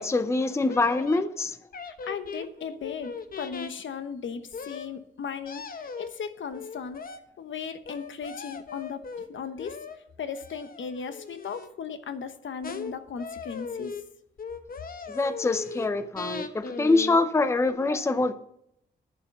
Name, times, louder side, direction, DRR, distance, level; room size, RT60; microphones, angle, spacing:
voice 1, 0.0-1.6 15.1-18.3, left 3 dB, 15° left, 0.5 m, -25 dB
sound 1, 0.7-1.2 1.7-3.7 4.5-4.9 5.4-6.1 6.5-7.2 7.8-9.3 9.6-10.0 10.3-11.7 12.6-12.9 13.2-14.0 14.4-15.9 16.2-17.2 17.7-17.8, left 5 dB, 45° left, 0.9 m, -38 dB
voice 2, 2.0-7.0 7.4-9.0 9.3-9.8 10.2-13.9, left 6 dB, 80° left, 1.1 m, -36 dB
11.5 x 7.1 x 6.0 m
wide cardioid pair, 165°, 20 cm